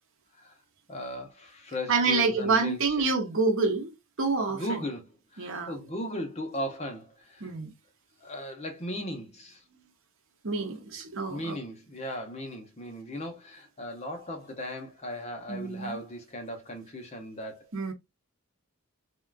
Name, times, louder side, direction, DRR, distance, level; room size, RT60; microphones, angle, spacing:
voice 1, 0.9-3.1 4.5-5.0 5.3-7.5 8.2-9.6 11.3-17.7, left 1 dB, 30° left, 0.7 m, -37 dB
voice 2, 1.9-4.8 5.4-5.8 7.4-7.7 10.4-11.6 15.5-16.0 17.7-17.9, right 4 dB, 60° right, 0.8 m, -27 dB
3.6 x 2.3 x 2.3 m
head